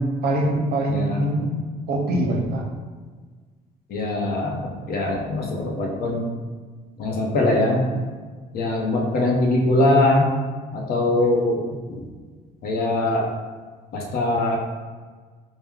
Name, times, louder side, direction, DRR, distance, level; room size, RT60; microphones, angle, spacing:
voice 1, 0.2-1.6 1.9-2.6, right 1 dB, 70° right, 0 dB, 0.7 m, -23 dB
voice 2, 0.9-1.3 3.9-6.2 7.0-7.8 8.5-10.3 10.7-12.0 12.6-13.3 13.9-14.6, left 2 dB, 65° left, 0 dB, 0.7 m, -22 dB
4.5 x 2.1 x 3.6 m, 1.5 s
cardioid pair, 110°, 17 cm